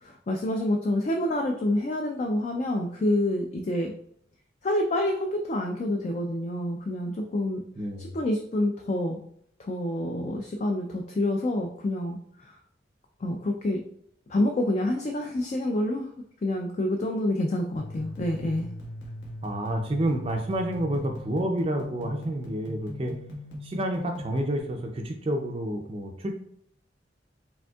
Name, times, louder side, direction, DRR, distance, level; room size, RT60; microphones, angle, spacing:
voice 1, 0.0-3.9 4.6-7.6 8.0-9.2 9.6-12.5 13.2-13.8 14.3-16.1 16.4-18.7, left 1 dB, 40° left, 3 dB, 0.3 m, -27 dB
voice 2, 7.8-8.2 19.4-23.1 23.6-26.3, right 1 dB, 30° right, 2 dB, 0.4 m, -29 dB
sound 1, 17.7-24.6, left 1 dB, 75° left, 1.3 m, -40 dB
5.0 x 3.5 x 2.3 m, 0.67 s
head